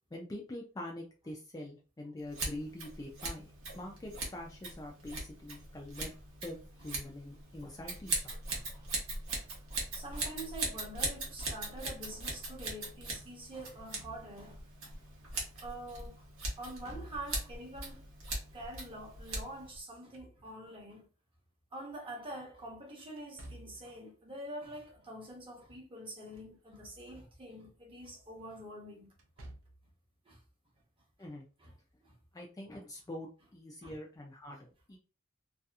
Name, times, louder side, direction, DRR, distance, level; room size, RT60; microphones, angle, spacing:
voice 1, 0.1-3.5 3.8-6.1 6.4-8.4 31.2-31.4 32.3-35.0, left 1 dB, 15° left, 0.3 m, -45 dB
Scissors, 2.3-19.8, right 2 dB, 85° right, 1.0 m, -40 dB
voice 2, 8.5-15.0 15.2-16.3 16.6-18.0 18.5-21.0 21.7-29.1 29.4-29.5 30.2-30.4 31.6-31.7 32.0-32.1 33.8-33.9, right 1 dB, 25° right, 0.9 m, -46 dB
Slam / Thump thud, 13.7-14.6 16.7-17.6 19.8-20.9 23.2-24.0 26.0-26.6 27.0-27.1 29.1-29.9, right 1 dB, 65° right, 0.6 m, -53 dB
2.7 x 2.4 x 2.3 m
head